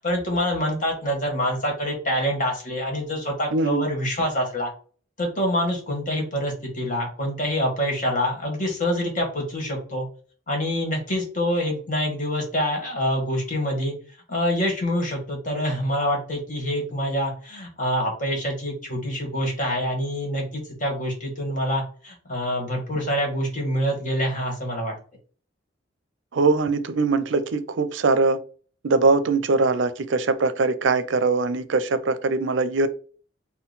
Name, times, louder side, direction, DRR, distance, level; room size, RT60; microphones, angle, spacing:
voice 1, 0.0-4.7 5.2-10.1 10.5-13.9 14.3-24.9, equal, 40° left, 1.5 m, -26 dB
voice 2, 3.5-3.8 26.3-28.4 28.8-32.9, right 3 dB, 75° right, 0.5 m, -22 dB
3.8 x 2.2 x 4.0 m
head